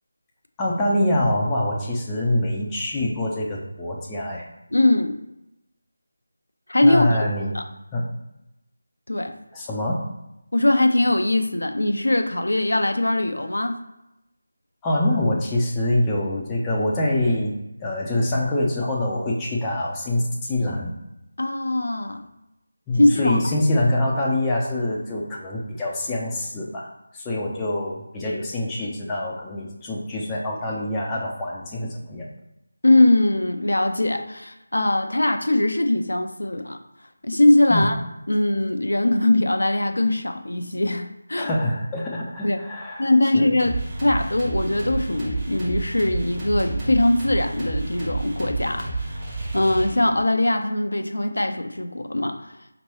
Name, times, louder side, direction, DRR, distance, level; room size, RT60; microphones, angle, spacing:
voice 1, 0.6-4.5 6.8-7.5 7.9-8.0 9.5-10.0 14.8-21.0 22.9-26.9 27.1-32.3 37.7-37.9 41.3-43.1 43.3-43.5, left 1 dB, 10° left, -5 dB, 0.6 m, -25 dB
voice 2, 4.7-5.2 6.7-7.2 7.5-7.7 9.1-9.3 10.5-13.8 21.4-22.2 22.9-23.5 32.8-36.8 37.2-38.0 38.3-41.5 42.4-42.6 43.0-49.2 49.5-52.6, left 1 dB, 70° left, 6 dB, 0.5 m, -21 dB
sound 1, 43.6-50.3, right 2 dB, 20° right, 1.3 m, -30 dB
5.1 x 3.0 x 3.0 m, 0.88 s
figure-of-eight pair, 160°, 0 cm